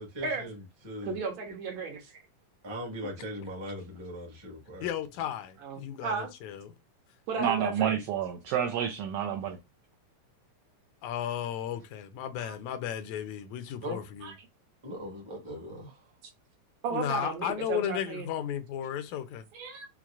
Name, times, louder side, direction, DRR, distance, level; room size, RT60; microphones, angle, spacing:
voice 1, 0.0-1.2 2.6-4.9 13.8-14.0 14.8-16.0, equal, 35° right, 0.4 m, -40 dB
voice 2, 1.0-2.1 5.6-6.3 7.3-8.0 12.4-12.5 14.2-14.3 16.8-18.3 19.5-19.9, right 4 dB, 70° right, 2.0 m, -34 dB
voice 3, 4.8-6.7 11.0-14.3 16.9-19.4, left 10 dB, 80° left, 1.9 m, -34 dB
voice 4, 7.4-9.6, right 9 dB, 90° right, 1.3 m, -29 dB
5.8 x 2.1 x 2.4 m
omnidirectional pair, 3.3 m